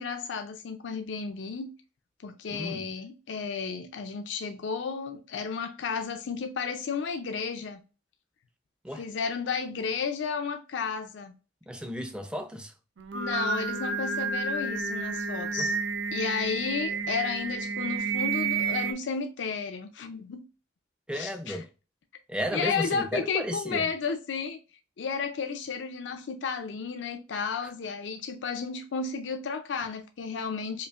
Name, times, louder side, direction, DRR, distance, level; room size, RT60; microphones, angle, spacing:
voice 1, 0.0-1.7 2.2-7.8 9.0-11.3 13.1-15.8 16.1-20.4 21.1-21.6 22.5-24.6 25.0-30.9, left 5 dB, 80° left, 0.4 m, -33 dB
voice 2, 2.5-2.8 8.8-9.0 11.7-12.7 15.6-15.7 21.1-21.7 22.3-23.9, equal, 5° right, 0.4 m, -33 dB
Singing, 13.0-18.9, right 5 dB, 80° right, 0.5 m, -30 dB
5.0 x 2.5 x 2.4 m
head